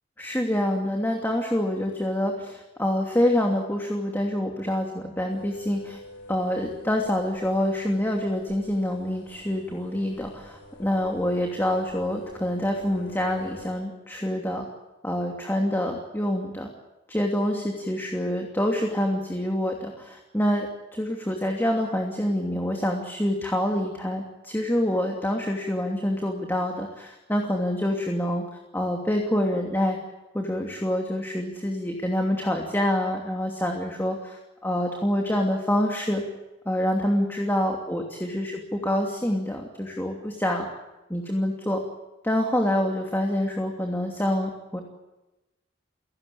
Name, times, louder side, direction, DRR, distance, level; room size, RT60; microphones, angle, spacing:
voice 1, 0.2-6.0 6.3-14.6 15.0-16.7 17.1-28.4 28.7-30.0 30.3-36.2 36.7-40.7 41.1-41.8 42.2-44.8, left 1 dB, 10° left, 1 dB, 2.8 m, -26 dB
sound 1, 5.3-13.7, left 1 dB, 85° left, 6.9 m, -46 dB
30.0 x 17.5 x 8.7 m, 1.0 s
head